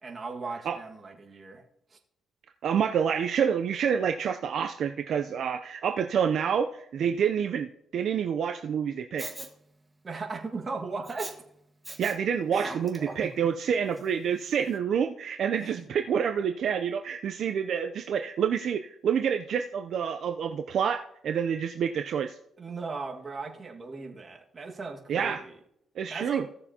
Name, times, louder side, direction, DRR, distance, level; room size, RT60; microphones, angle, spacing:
voice 1, 0.0-1.6 1.9-2.0 10.0-11.3 12.5-12.8 15.6-15.9 22.6-25.5 26.1-26.5, right 4 dB, 35° right, 1 dB, 1.7 m, -37 dB
voice 2, 2.6-9.3 12.0-22.4 25.1-25.4 26.0-26.4, right 7 dB, 65° right, 6 dB, 0.5 m, -28 dB
Respiratory sounds, 9.2-9.5 11.0-11.3 11.8-12.2 12.5-13.3 14.0-14.1, right 2 dB, 15° right, 1.4 m, -40 dB
16.5 x 6.8 x 2.8 m, 0.75 s
cardioid pair, 90°, 0 cm